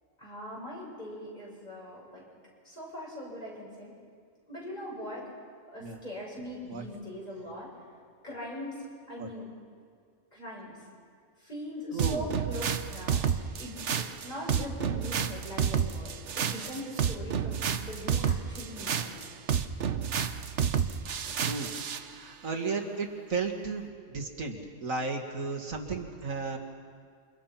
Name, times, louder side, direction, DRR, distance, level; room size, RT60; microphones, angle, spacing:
voice 1, 0.2-2.2 2.6-3.9 4.5-5.3 5.7-7.7 8.2-9.5 10.3-10.8 11.4-12.6 12.9-13.2 13.6-19.1, equal, 30° left, -5 dB, 8.3 m, -41 dB
voice 2, 11.9-12.2 21.4-21.7 22.2-26.6, right 4 dB, 85° right, 1 dB, 2.5 m, -34 dB
sound 1, 12.0-22.1, right 7 dB, 65° right, 1.2 m, -30 dB
29.0 x 26.0 x 5.9 m, 2.1 s
omnidirectional pair, 1.4 m